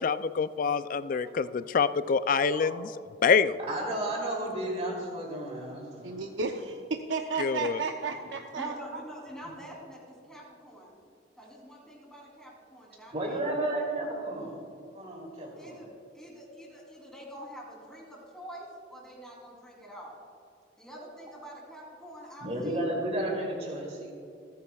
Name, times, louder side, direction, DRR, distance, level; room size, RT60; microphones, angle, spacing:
voice 1, 0.0-2.9 3.2-3.6 7.4-7.8, left 5 dB, 45° left, 14 dB, 0.4 m, -26 dB
voice 2, 3.7-6.4 13.1-14.6 14.9-15.8 22.4-24.1, right 1 dB, 35° right, -2 dB, 2.9 m, -33 dB
voice 3, 6.0-9.0, right 4 dB, 75° right, 4 dB, 0.6 m, -33 dB
voice 4, 8.5-11.0 11.4-13.7 15.6-15.9 16.1-20.2 20.8-22.9, equal, 5° left, -3 dB, 3.1 m, -46 dB
28.5 x 9.5 x 2.3 m, 2.5 s
head